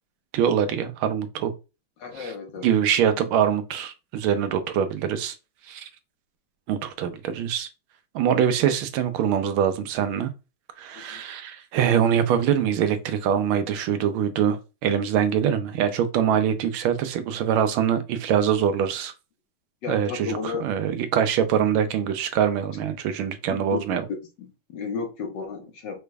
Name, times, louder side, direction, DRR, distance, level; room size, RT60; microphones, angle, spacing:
voice 1, 0.3-1.5 2.2-2.3 2.6-5.3 5.7-5.9 6.7-7.7 8.1-10.3 10.8-19.1 19.9-24.0, right 8 dB, 90° right, 1.5 m, -24 dB
voice 2, 2.0-2.7 10.9-11.2 19.8-20.6 23.2-24.0 24.4-26.0, left 5 dB, 65° left, 1.5 m, -34 dB
4.9 x 3.3 x 2.2 m
omnidirectional pair, 2.2 m